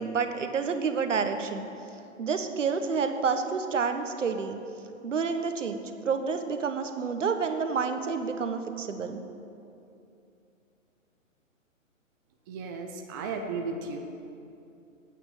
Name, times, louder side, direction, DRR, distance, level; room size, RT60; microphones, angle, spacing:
voice 1, 0.0-1.7 2.2-4.6 5.0-9.2, right 5 dB, 65° right, 7 dB, 1.4 m, -29 dB
voice 2, 12.5-14.0, right 4 dB, 15° right, 3 dB, 0.5 m, -34 dB
14.0 x 9.1 x 7.2 m, 2.7 s
figure-of-eight pair, 130°, 40 cm